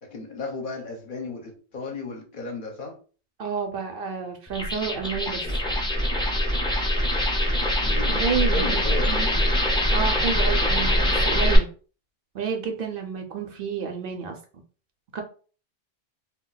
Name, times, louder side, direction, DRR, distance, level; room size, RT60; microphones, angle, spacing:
voice 1, 0.0-3.0 7.8-8.2 8.5-9.4, left 2 dB, 55° left, 0.7 m, -34 dB
voice 2, 3.4-5.4 8.1-9.4 9.9-11.7 12.3-14.4 15.1-15.2, right 6 dB, 65° right, 0.7 m, -30 dB
sound 1, 4.5-11.6, left 1 dB, 5° left, 0.4 m, -23 dB
2.3 x 2.2 x 3.8 m
omnidirectional pair, 1.1 m